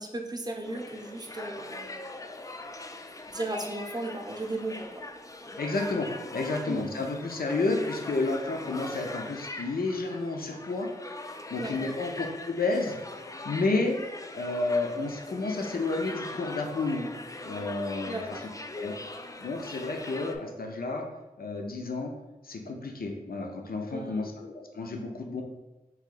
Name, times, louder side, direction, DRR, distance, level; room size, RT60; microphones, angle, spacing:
voice 1, 0.0-2.3 3.3-5.0 6.7-6.9 11.6-11.9 18.1-18.5 23.9-24.3, right 2 dB, 25° right, 2 dB, 0.6 m, -36 dB
sound 1, 0.6-20.4, left 2 dB, 25° left, 0.3 m, -41 dB
voice 2, 5.6-6.1 6.3-10.9 11.2-13.0 13.4-14.0 14.3-17.1 17.4-18.4 18.8-18.9 19.4-21.1 21.4-22.1 22.4-25.4, left 3 dB, 80° left, 2 dB, 0.6 m, -31 dB
3.1 x 2.7 x 3.8 m, 1.0 s
wide cardioid pair, 50°, 15 cm